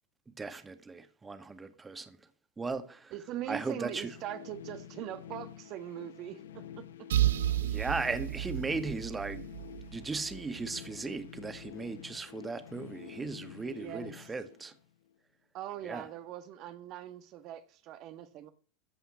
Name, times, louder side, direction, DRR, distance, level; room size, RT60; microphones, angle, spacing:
voice 1, 0.4-2.2 2.6-3.1 3.5-4.2 7.6-9.5 9.9-14.7 15.8-16.1, right 4 dB, 15° right, 1.8 m, -37 dB
voice 2, 3.1-7.1 13.7-14.3 15.5-18.5, right 12 dB, 50° right, 1.3 m, -42 dB
sound 1, 3.2-15.1, left 10 dB, 80° left, 1.1 m, -49 dB
sound 2, 7.1-10.8, right 13 dB, 75° right, 0.5 m, -32 dB
15.0 x 5.7 x 8.3 m
hypercardioid pair, 90°, 0 cm